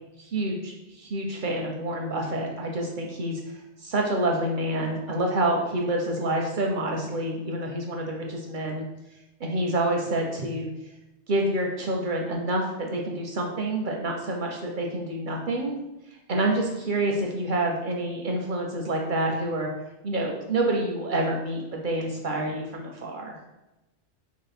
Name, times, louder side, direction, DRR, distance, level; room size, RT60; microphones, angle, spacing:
voice 1, 0.2-8.8 9.4-10.7 11.3-15.8 16.3-19.7 20.0-23.4, right 1 dB, 55° right, 1 dB, 0.6 m, -28 dB
3.0 x 2.8 x 4.1 m, 1.0 s
omnidirectional pair, 1.2 m